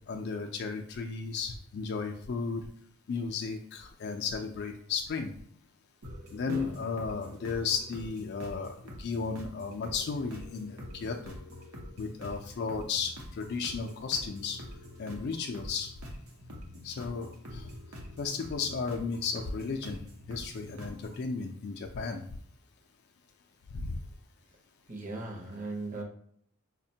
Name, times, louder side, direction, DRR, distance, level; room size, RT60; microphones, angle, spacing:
voice 1, 0.1-2.7 3.1-5.3 6.3-11.2 12.0-14.6 15.0-15.9 16.8-17.8 18.2-20.0 20.3-22.2 23.7-24.0, left 5 dB, 50° left, 3 dB, 0.3 m, -34 dB
sound 1, 6.0-21.2, left 1 dB, 85° right, 0.8 m, -46 dB
voice 2, 6.5-6.8 24.9-26.0, right 2 dB, 40° right, 1 dB, 0.7 m, -38 dB
4.9 x 2.1 x 2.7 m, 0.63 s
head